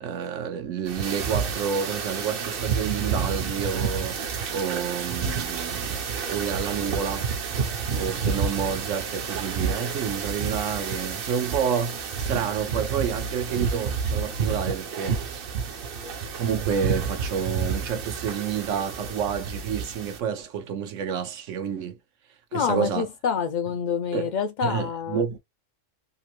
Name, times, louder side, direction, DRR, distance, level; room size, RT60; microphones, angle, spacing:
voice 1, 0.0-7.3 8.0-15.5 16.4-22.0 22.5-23.1 24.1-24.3 24.6-25.4, right 7 dB, 75° right, 1.0 m, -29 dB
sound 1, 0.9-20.2, right 6 dB, 55° right, 0.8 m, -30 dB
voice 2, 22.5-25.2, left 7 dB, 85° left, 0.4 m, -27 dB
2.9 x 2.5 x 2.9 m
omnidirectional pair, 1.3 m